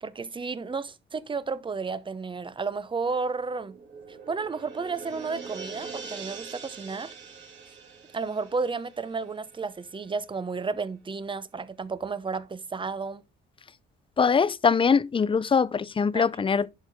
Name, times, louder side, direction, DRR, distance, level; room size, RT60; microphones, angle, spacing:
voice 1, 0.0-3.8 4.1-7.1 8.1-13.2 16.1-16.2, right 4 dB, 25° right, 0.7 m, -32 dB
sound 1, 3.0-10.0 10.3-10.4, right 5 dB, 70° right, 2.8 m, -43 dB
voice 2, 14.2-16.7, left 5 dB, 25° left, 0.5 m, -22 dB
11.0 x 4.6 x 3.5 m
cardioid pair, 90°, 20 cm